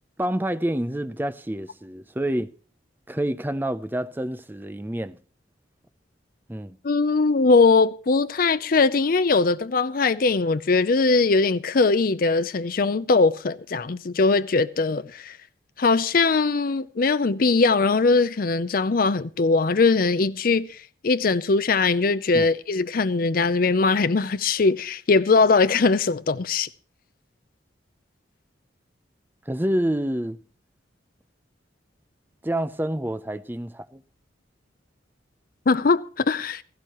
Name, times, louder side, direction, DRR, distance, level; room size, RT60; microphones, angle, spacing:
voice 1, 0.2-2.5 3.1-5.2 6.5-6.8 22.3-22.5 29.5-30.4 32.4-34.0, right 1 dB, 10° right, 0.5 m, -28 dB
voice 2, 6.8-15.4 15.8-20.8 21.0-26.7 35.7-36.6, left 4 dB, 50° left, 0.5 m, -21 dB
16.5 x 14.5 x 3.0 m
head